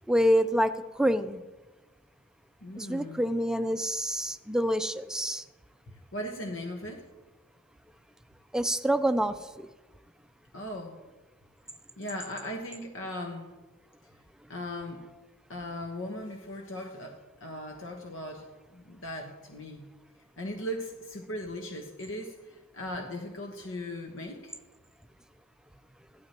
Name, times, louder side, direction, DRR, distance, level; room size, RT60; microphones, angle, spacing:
voice 1, 0.1-1.4 2.8-5.4 8.5-9.7, equal, 5° right, 10 dB, 0.4 m, -27 dB
voice 2, 2.6-3.2 5.9-7.0 10.5-11.0 12.0-13.5 14.5-15.0 15.5-19.9 20.4-24.6, left 1 dB, 75° left, 2 dB, 1.2 m, -38 dB
15.5 x 12.0 x 3.0 m, 1.2 s
head